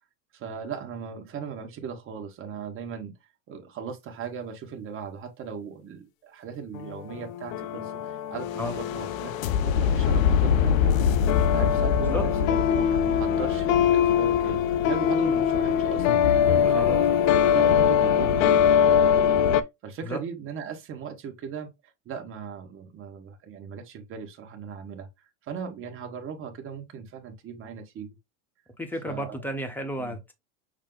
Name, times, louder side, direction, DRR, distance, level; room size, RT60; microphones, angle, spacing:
voice 1, 0.3-3.1 3.5-9.3 9.6-10.9 11.5-16.2 16.6-17.1 17.5-21.7 22.0-25.1 25.4-28.1 29.0-29.4 30.0-30.2, right 6 dB, 35° right, 1.3 m, -38 dB
sound 1, 6.8-19.6, left 8 dB, 85° left, 0.7 m, -22 dB
voice 2, 16.6-17.0 20.0-20.2 28.8-30.3, equal, 5° left, 0.9 m, -32 dB
6.4 x 2.1 x 3.8 m
supercardioid pair, 135°, 39 cm